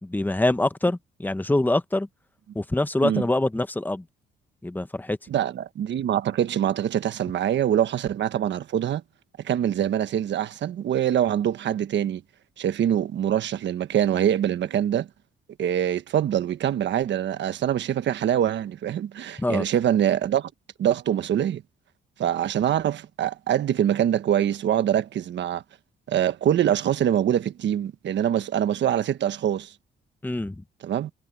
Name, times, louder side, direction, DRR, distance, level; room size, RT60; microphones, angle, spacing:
voice 1, 0.0-2.1 2.5-4.0 4.6-5.2 19.4-19.6 30.2-30.6, left 2 dB, 10° left, 1.3 m, -24 dB
voice 2, 5.3-9.0 9.4-12.2 12.6-15.1 15.6-20.5 20.8-21.6 22.2-25.6 26.1-29.7 30.8-31.1, right 10 dB, 65° right, 1.3 m, -24 dB
cardioid pair, 90°, 20 cm